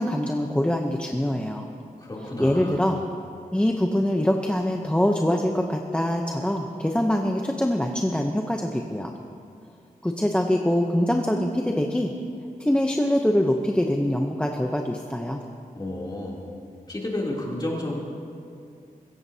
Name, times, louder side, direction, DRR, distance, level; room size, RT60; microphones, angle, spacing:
voice 1, 0.0-1.7 2.4-3.0 3.5-9.1 10.0-12.1 12.6-15.4, left 1 dB, 5° left, 2 dB, 0.7 m, -24 dB
voice 2, 2.0-2.8 15.7-16.4 16.9-18.0, left 1 dB, 30° left, -4 dB, 3.0 m, -31 dB
24.0 x 15.0 x 2.8 m, 2.5 s
wide cardioid pair, 135°, 15 cm